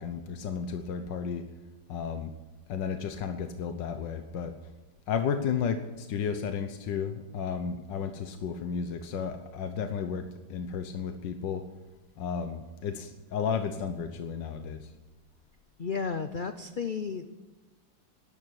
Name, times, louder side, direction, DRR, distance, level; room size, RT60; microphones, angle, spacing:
voice 1, 0.0-1.5 1.9-2.3 2.7-4.6 5.1-11.7 12.2-14.9, left 6 dB, 85° left, 8 dB, 1.6 m, -33 dB
voice 2, 15.8-17.3, left 5 dB, 65° left, 9 dB, 0.5 m, -33 dB
13.0 x 11.5 x 9.6 m, 1.2 s
omnidirectional pair, 1.9 m